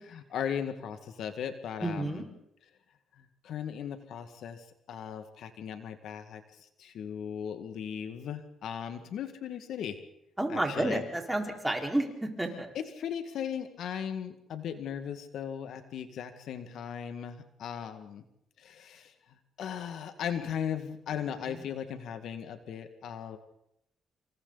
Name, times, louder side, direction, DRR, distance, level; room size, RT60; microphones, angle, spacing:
voice 1, 0.1-2.2 3.2-10.0 10.5-11.0 12.7-18.2 18.6-19.1 19.6-23.4, left 8 dB, 75° left, 8 dB, 2.0 m, -37 dB
voice 2, 1.8-2.2 10.4-12.7 21.5-21.6, right 1 dB, 10° right, 1 dB, 4.8 m, -31 dB
28.5 x 27.5 x 4.1 m, 0.78 s
cardioid pair, 90°, 0 cm